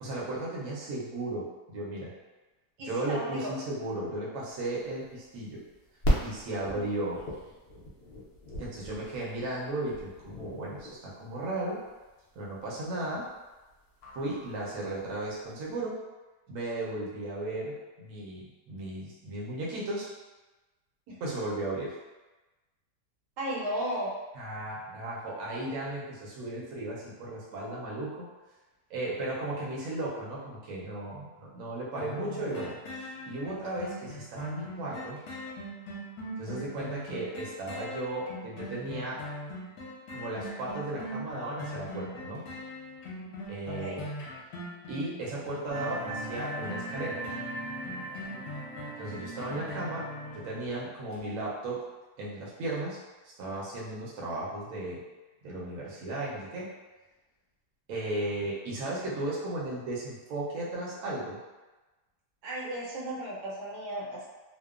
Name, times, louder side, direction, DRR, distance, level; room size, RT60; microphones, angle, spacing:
voice 1, 0.0-2.1 2.8-5.6 6.2-7.2 8.6-11.8 12.4-13.3 14.1-16.0 16.5-20.1 21.2-21.9 24.3-28.3 28.9-32.8 33.2-35.2 36.4-39.2 40.1-42.4 43.5-44.1 44.9-47.2 49.0-50.1 50.3-51.9 52.2-53.0 53.4-55.0 55.4-56.7 57.9-61.4, right 2 dB, 65° right, -5 dB, 0.9 m, -35 dB
voice 2, 2.8-3.5 6.7-6.9 21.1-21.2 23.4-24.1 43.7-44.0 62.4-64.3, right 1 dB, 80° right, -5 dB, 1.2 m, -35 dB
sound 1, 4.5-15.6, equal, 85° left, 0.5 m, -36 dB
sound 2, 32.0-50.7 51.1-51.2, left 1 dB, 65° left, 1.0 m, -41 dB
sound 3, 45.7-50.8, right 1 dB, 15° right, 0.7 m, -40 dB
2.8 x 2.0 x 2.3 m, 1.2 s
omnidirectional pair, 1.8 m